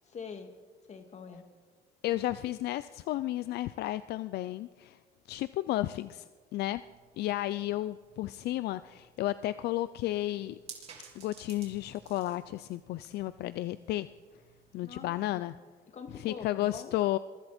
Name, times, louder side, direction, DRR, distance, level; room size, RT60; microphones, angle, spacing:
voice 1, 0.0-0.5 0.9-1.5 14.8-15.5 15.9-16.9, left 6 dB, 40° left, 5 dB, 2.5 m, -45 dB
voice 2, 2.0-5.0 5.3-6.2 6.5-6.8 7.2-10.6 11.1-14.1 14.7-15.5 16.2-17.2, left 15 dB, 75° left, 14 dB, 0.5 m, -33 dB
sound 1, 6.8-15.0, right 5 dB, 40° right, 4.3 m, -55 dB
27.0 x 23.0 x 4.4 m, 1.5 s
cardioid pair, 110°, 17 cm